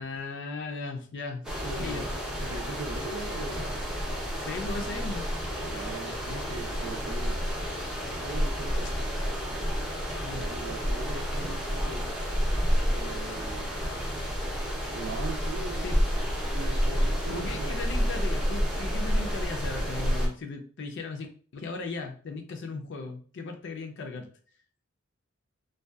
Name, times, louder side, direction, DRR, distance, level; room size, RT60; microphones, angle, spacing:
voice 1, 0.0-1.4 1.8-2.1 4.4-5.3 10.2-10.4 15.8-16.0 17.3-21.3 21.5-24.3, left 3 dB, 55° left, 4 dB, 0.4 m, -37 dB
sound 1, 1.4-20.3, equal, 5° right, 0.5 m, -30 dB
voice 2, 1.6-2.1 2.4-3.9 5.7-7.4 8.2-9.0 10.3-12.1 12.9-13.7 14.9-15.9 16.5-18.0, right 3 dB, 75° right, 5 dB, 0.5 m, -40 dB
2.6 x 2.3 x 2.3 m, 0.44 s
head